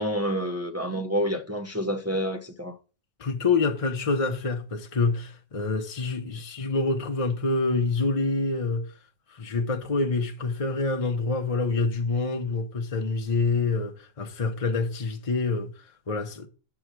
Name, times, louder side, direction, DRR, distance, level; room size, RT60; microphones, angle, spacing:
voice 1, 0.0-2.8, equal, 15° right, 0.5 m, -28 dB
voice 2, 3.2-8.9 9.3-16.5, left 3 dB, 30° left, 0.6 m, -27 dB
6.5 x 4.8 x 6.1 m
omnidirectional pair, 1.5 m